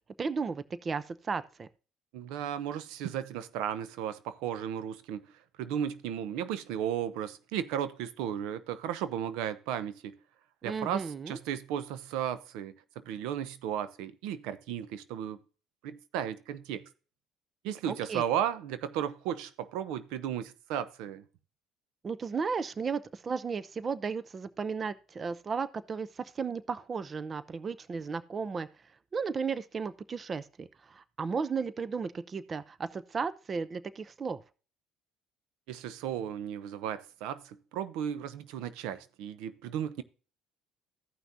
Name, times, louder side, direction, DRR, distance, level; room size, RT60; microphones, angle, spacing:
voice 1, 0.2-1.7 10.6-11.4 17.9-18.2 22.0-28.7 29.1-34.4, right 5 dB, 30° right, 0.6 m, -34 dB
voice 2, 2.1-5.3 5.6-10.2 10.6-15.4 15.8-16.9 17.6-21.2 35.7-40.0, right 9 dB, 80° right, 0.7 m, -35 dB
15.0 x 5.9 x 2.7 m
cardioid pair, 100°, 0 cm